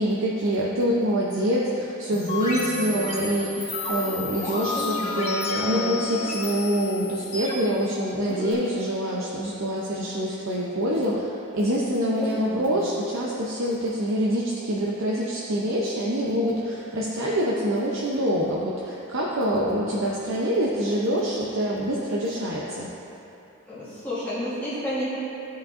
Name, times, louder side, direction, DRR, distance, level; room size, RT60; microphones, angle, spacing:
voice 1, 0.0-22.9, equal, 70° right, -5 dB, 0.7 m, -25 dB
sound 1, 2.1-8.5, left 3 dB, 30° left, 1.1 m, -31 dB
voice 2, 4.4-6.0 12.2-12.8 23.7-25.0, equal, 10° left, -12 dB, 1.4 m, -32 dB
13.0 x 5.1 x 2.6 m, 2.9 s
head